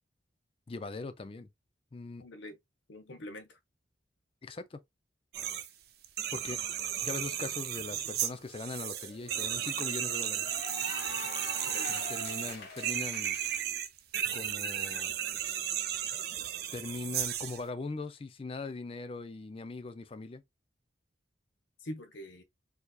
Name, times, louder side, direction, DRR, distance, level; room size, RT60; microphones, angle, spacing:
voice 1, 0.7-1.5 1.9-2.2 4.4-4.8 6.3-6.6 7.0-10.5 11.9-13.4 14.3-15.1 16.7-20.4, left 3 dB, 30° left, 0.4 m, -40 dB
voice 2, 2.2-2.6 2.9-3.6 11.7-12.0 21.8-22.4, left 1 dB, 85° left, 0.8 m, -44 dB
sound 1, 5.3-5.7 6.0-17.6, right 10 dB, 55° right, 0.4 m, -34 dB
Cheering / Applause, 8.2-13.6, left 3 dB, 65° left, 1.3 m, -44 dB
4.5 x 2.8 x 2.3 m
head